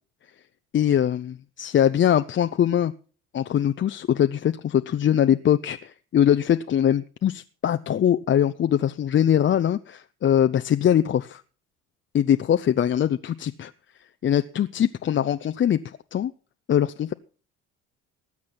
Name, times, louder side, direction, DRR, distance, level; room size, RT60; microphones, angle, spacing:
voice 1, 0.7-2.9 3.3-11.4 12.1-13.7 14.2-15.8 16.1-16.3 16.7-17.1, left 10 dB, 35° left, 10 dB, 0.6 m, -22 dB
19.0 x 7.5 x 5.8 m, 0.39 s
hypercardioid pair, 65°, 34 cm